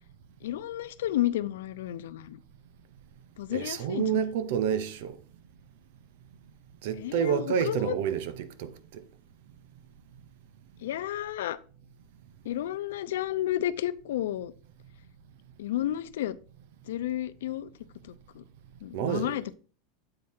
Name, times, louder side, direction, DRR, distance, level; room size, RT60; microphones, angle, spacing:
voice 1, 0.4-2.4 3.4-4.2 7.0-7.9 10.8-11.6 12.4-14.5 15.6-16.4 16.9-17.7 18.3-18.4 18.8-19.5, left 13 dB, 85° left, 0.5 m, -31 dB
voice 2, 3.5-5.2 6.8-8.7 18.9-19.4, right 8 dB, 65° right, 0.8 m, -29 dB
7.7 x 4.7 x 4.3 m
supercardioid pair, 150°, 0 cm